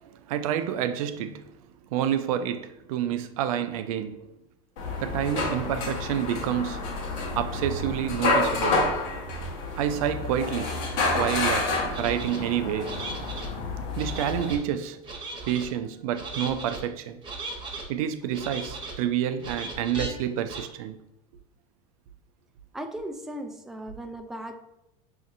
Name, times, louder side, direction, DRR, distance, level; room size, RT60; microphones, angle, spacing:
voice 1, 0.0-1.6 1.9-4.2 5.0-6.8 7.4-8.9 9.8-10.8 11.1-13.0 14.0-15.0 15.5-17.2 17.9-21.0, right 10 dB, 70° right, 0.4 m, -28 dB
sound 1, 4.8-14.5, left 2 dB, 65° left, 1.1 m, -29 dB
sound 2, 11.9-12.4 12.8-13.5 13.9-14.6 15.0-15.7 16.1-16.8 17.2-17.8 18.3-19.0 19.4-20.1 20.5-20.6, right 3 dB, 25° right, 1.0 m, -37 dB
voice 2, 22.7-24.6, right 1 dB, ahead, 0.3 m, -37 dB
5.7 x 2.6 x 2.5 m
hypercardioid pair, 95°, 19 cm